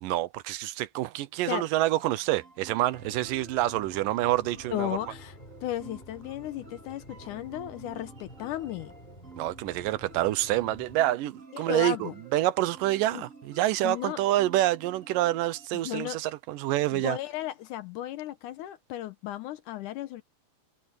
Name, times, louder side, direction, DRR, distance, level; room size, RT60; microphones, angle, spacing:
voice 1, 0.0-5.0 9.4-17.2, right 15 dB, 80° right, 2.3 m, -27 dB
sound 1, 1.9-15.7, right 4 dB, 25° right, 2.2 m, -51 dB
sound 2, 2.9-11.0, left 1 dB, 10° left, 6.0 m, -50 dB
voice 2, 4.7-5.4 5.6-8.9 11.5-12.1 13.1-13.2 13.8-14.2 15.8-16.2 16.9-20.2, left 13 dB, 75° left, 2.1 m, -35 dB
omnidirectional pair, 4.0 m